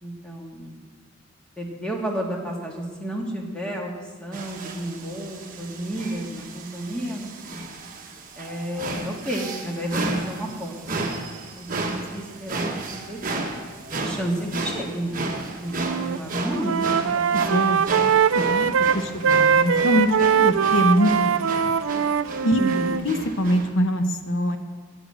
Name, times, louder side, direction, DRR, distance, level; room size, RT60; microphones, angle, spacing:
voice 1, 0.0-0.8 1.6-3.9 4.2-7.3 8.3-10.0 10.3-11.2 11.6-12.7 12.9-13.5 13.9-17.3 22.6-22.9, right 1 dB, 5° left, -1 dB, 1.7 m, -32 dB
sound 1, 4.3-23.7, right 2 dB, 40° right, 1.2 m, -33 dB
Wind instrument woodwind instrument, 15.8-16.2 16.5-23.0, right 7 dB, 70° right, 0.4 m, -21 dB
voice 2, 17.3-17.8 18.3-21.2 21.6-21.7 22.4-22.6 23.0-24.6, equal, 60° left, 7 dB, 0.9 m, -23 dB
9.0 x 8.0 x 7.8 m, 1.5 s
head